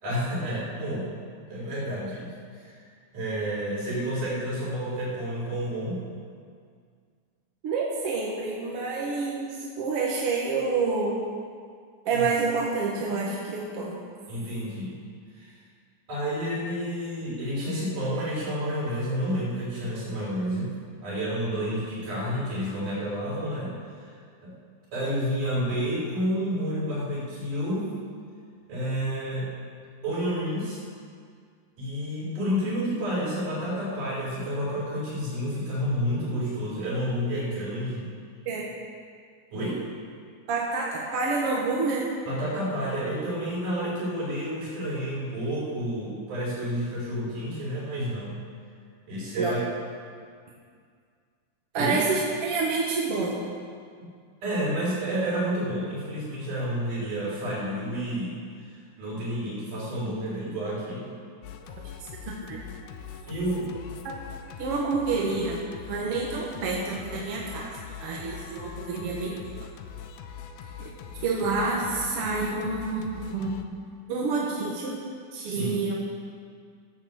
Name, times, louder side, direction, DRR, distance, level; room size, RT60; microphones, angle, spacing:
voice 1, 0.0-1.1 1.5-2.3 2.6-2.8 3.1-6.0 12.1-12.2 14.3-14.9 15.3-15.6 16.1-20.7 21.0-23.7 24.4-24.5 24.9-27.9 28.7-29.5 30.0-30.8 31.8-38.1 39.5-39.8 42.3-48.4 49.1-49.7 51.7-52.0 54.0-54.1 54.4-58.4 59.0-61.1 63.3-63.7 75.5-75.8, equal, 80° right, -7 dB, 5.7 m, -30 dB
voice 2, 7.6-11.2 12.1-14.0 38.5-38.7 40.5-42.1 49.4-49.5 51.7-53.4 62.3-62.6 64.0-64.1 64.6-65.6 65.9-67.7 68.0-69.5 70.8-70.9 71.2-73.6 74.1-75.0 75.3-76.0, right 4 dB, 55° right, -3 dB, 2.0 m, -28 dB
Singing, 61.4-73.6, left 7 dB, 80° left, 2.2 m, -42 dB
14.5 x 7.1 x 7.7 m, 2.1 s
omnidirectional pair, 3.5 m